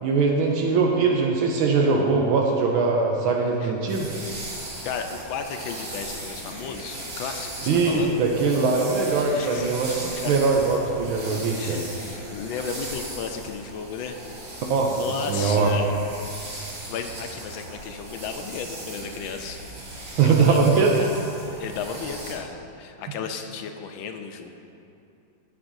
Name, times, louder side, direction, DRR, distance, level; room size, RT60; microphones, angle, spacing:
voice 1, 0.0-4.1 7.7-11.8 14.7-15.0 15.3-15.7 20.2-20.9, right 4 dB, 80° right, 0 dB, 1.5 m, -21 dB
sound 1, 3.9-22.3, right 1 dB, 35° right, 1.3 m, -38 dB
voice 2, 4.8-8.2 9.3-9.7 10.1-10.4 11.6-16.0 16.6-19.6 20.2-21.1 21.5-24.5, left 6 dB, 80° left, 5 dB, 1.4 m, -34 dB
16.0 x 6.0 x 2.7 m, 2.6 s
omnidirectional pair, 2.3 m